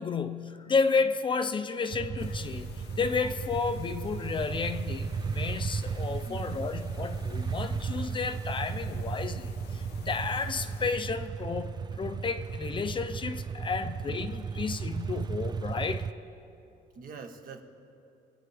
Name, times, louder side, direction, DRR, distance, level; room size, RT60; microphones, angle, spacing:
voice 1, 0.0-2.7 3.0-16.1, left 4 dB, 30° left, 9 dB, 0.6 m, -32 dB
sound 1, 1.9-16.1, right 5 dB, 25° right, 0.4 m, -35 dB
sound 2, 2.2-11.0, left 6 dB, 75° left, 0.7 m, -48 dB
voice 2, 6.2-6.7 13.8-13.9 16.9-17.6, right 5 dB, 55° right, 4 dB, 1.6 m, -45 dB
28.0 x 9.5 x 3.5 m, 2.7 s
cardioid pair, 110°, 17 cm